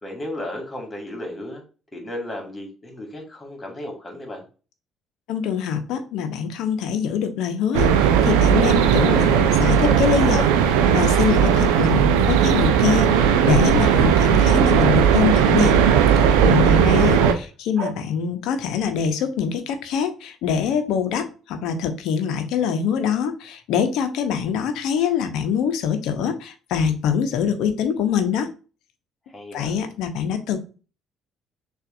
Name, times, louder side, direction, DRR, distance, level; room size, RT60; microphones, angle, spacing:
voice 1, 0.0-1.6 1.9-4.4 16.5-16.9 29.3-29.7, left 1 dB, 25° left, 2 dB, 1.8 m, -34 dB
voice 2, 5.3-15.8 16.2-28.5 29.5-30.6, left 7 dB, 65° left, 7 dB, 0.7 m, -24 dB
sound 1, 7.7-17.3, right 8 dB, 75° right, 0.4 m, -17 dB
sound 2, 8.1-9.5 9.8-11.3 13.7-14.3 15.9-16.7 17.0-17.4 17.8-17.9, right 3 dB, 60° right, 1.1 m, -33 dB
6.5 x 2.5 x 2.5 m, 0.35 s
hypercardioid pair, 50°, 0 cm